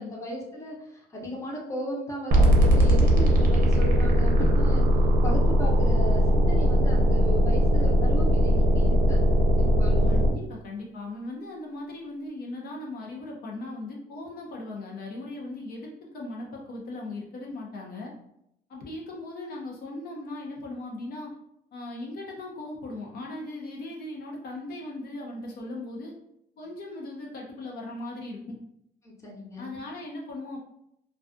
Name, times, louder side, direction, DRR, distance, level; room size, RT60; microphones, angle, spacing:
voice 1, 0.0-4.8 5.2-10.3 29.0-29.7, equal, 15° left, -3 dB, 0.7 m, -35 dB
sound 1, 2.3-10.3, equal, 55° right, 0.6 m, -20 dB
voice 2, 10.1-18.1 18.7-21.3 21.7-26.1 26.6-28.6 29.6-30.6, left 2 dB, 65° left, -1 dB, 0.7 m, -38 dB
2.3 x 2.3 x 2.5 m, 0.76 s
cardioid pair, 110°, 17 cm